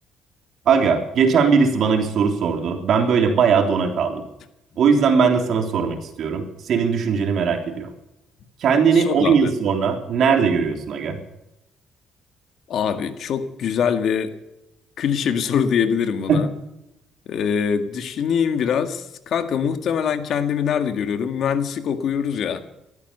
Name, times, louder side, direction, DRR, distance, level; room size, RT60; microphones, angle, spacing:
voice 1, 0.6-4.2 4.8-7.9 8.6-11.2 16.3-16.4, right 6 dB, 60° right, 4 dB, 3.4 m, -19 dB
voice 2, 8.9-9.5 12.7-14.3 15.0-16.5 17.3-22.6, left 7 dB, 60° left, 9 dB, 1.8 m, -23 dB
15.5 x 13.5 x 6.8 m, 0.88 s
cardioid pair, 95°, 0 cm